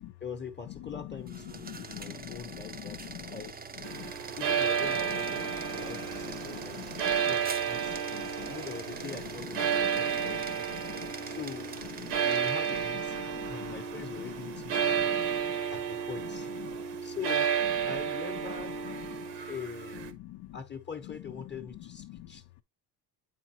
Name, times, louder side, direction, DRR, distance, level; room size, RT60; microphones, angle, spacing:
voice 1, 0.2-3.7 4.4-10.6 11.2-11.7 12.1-15.1 15.7-16.5 17.0-17.5 17.8-18.8 19.5-20.1 20.5-22.4, left 7 dB, 25° left, 0.9 m, -43 dB
sound 1, 1.2-13.0, right 5 dB, 20° right, 0.5 m, -44 dB
voice 2, 1.6-2.4 2.7-3.4 3.9-4.1 5.4-5.5 5.7-7.2 7.9-8.5 9.7-11.1 12.0-12.2 13.3-13.7 14.9-15.6 16.7-16.8 19.2-19.3 20.2-20.6 22.1-22.3, left 15 dB, 75° left, 0.6 m, -45 dB
sound 2, 3.8-20.1, right 7 dB, 85° right, 1.2 m, -32 dB
8.3 x 5.1 x 2.9 m
cardioid pair, 100°, 42 cm